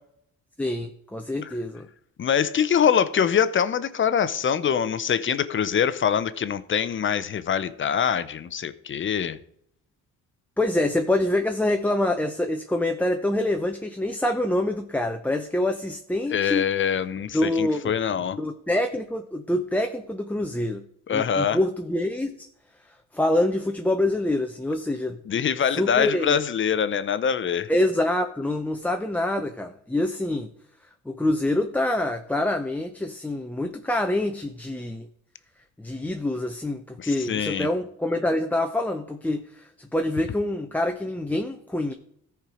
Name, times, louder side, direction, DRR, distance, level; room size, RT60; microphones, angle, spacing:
voice 1, 0.6-1.9 10.6-16.7 17.3-17.8 18.4-20.8 21.1-22.5 23.1-25.2 25.8-26.4 27.7-30.5 31.1-35.1 35.8-41.9, left 1 dB, 5° left, 0.6 m, -26 dB
voice 2, 2.2-9.4 16.3-18.4 21.1-21.6 25.3-27.7 37.0-37.7, left 8 dB, 40° left, 0.7 m, -24 dB
13.5 x 4.6 x 4.9 m
cardioid pair, 90°, 30 cm